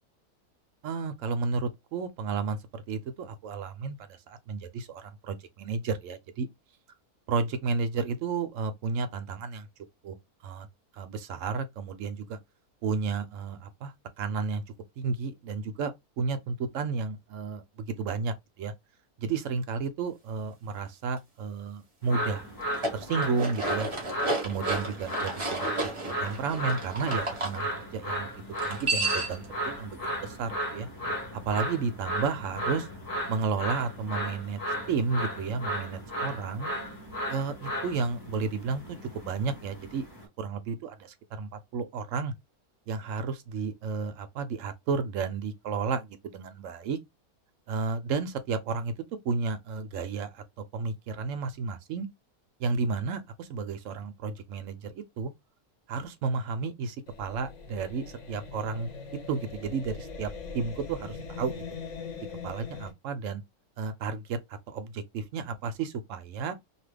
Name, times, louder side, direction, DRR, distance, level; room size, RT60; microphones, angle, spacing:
voice 1, 0.8-6.5 7.3-9.7 10.0-10.1 10.4-10.7 10.9-12.4 12.8-14.6 15.0-18.7 19.2-22.4 22.9-23.9 24.4-25.7 26.2-27.7 27.9-28.3 28.6-30.9 31.4-32.9 33.3-34.6 34.9-36.7 37.3-38.8 39.1-40.1 40.4-42.3 42.9-47.0 47.7-48.9 49.2-50.4 50.7-52.1 52.6-55.3 55.9-58.9 59.3-61.6 62.4-63.4 63.8-66.5, right 4 dB, 65° right, 0.8 m, -32 dB
sound 1, 22.0-40.2, equal, 15° left, 0.9 m, -35 dB
sound 2, 22.6-27.6 28.6-29.4, right 2 dB, 30° right, 0.6 m, -32 dB
sound 3, 57.1-62.9, left 4 dB, 55° left, 1.0 m, -41 dB
2.8 x 2.4 x 3.2 m
omnidirectional pair, 1.6 m